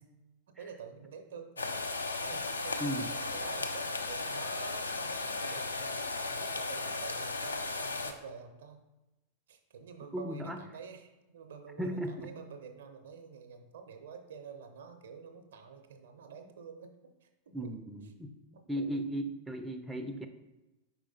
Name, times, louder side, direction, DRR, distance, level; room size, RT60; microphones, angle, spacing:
voice 1, 0.5-1.9 2.2-8.8 9.5-16.9 17.2-17.6 18.5-19.0, right 6 dB, 60° right, 7 dB, 0.5 m, -48 dB
Sauteing Shrimp, 1.6-8.1, left 3 dB, 75° left, 0.3 m, -36 dB
voice 2, 2.8-3.1 10.1-10.6 11.8-12.3 17.5-18.3 18.7-20.3, right 1 dB, 5° right, 5 dB, 0.3 m, -36 dB
4.6 x 4.3 x 2.7 m, 1.0 s
figure-of-eight pair, 90°, 0 cm